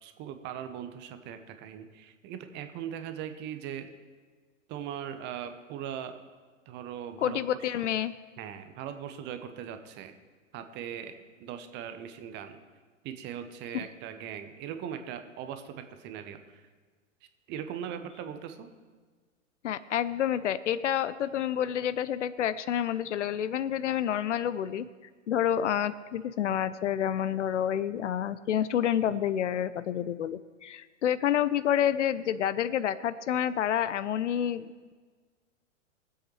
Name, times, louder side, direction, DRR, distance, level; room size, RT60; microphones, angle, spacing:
voice 1, 0.0-3.9 4.7-6.2 6.7-7.4 7.8-7.9 8.4-10.1 10.5-12.6 13.0-16.7 17.5-18.7, right 9 dB, 25° right, 8 dB, 0.8 m, -40 dB
voice 2, 7.2-8.1 19.6-24.9 25.3-34.9, left 10 dB, 65° left, 16 dB, 0.6 m, -29 dB
22.0 x 8.0 x 3.2 m, 1.4 s
figure-of-eight pair, 105°, 39 cm